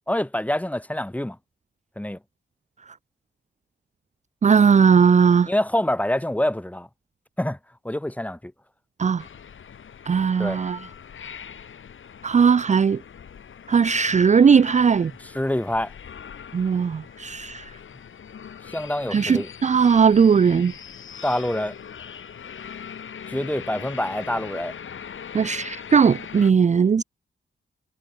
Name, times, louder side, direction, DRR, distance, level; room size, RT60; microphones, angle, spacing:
voice 1, 0.1-1.4 2.0-2.2 5.5-6.9 7.4-7.6 7.8-8.5 10.4-10.6 15.2-15.9 18.6-19.5 21.2-21.8 23.3-24.7, left 1 dB, 5° left, 5.8 m, -26 dB
voice 2, 4.4-5.5 9.0-9.2 10.1-10.8 12.2-13.0 13.7-15.1 16.5-17.7 19.1-20.7 25.3-27.0, right 6 dB, 35° right, 0.5 m, -18 dB
sound 1, 9.2-26.5, left 7 dB, 70° left, 7.7 m, -41 dB
wide cardioid pair, 110°, 21 cm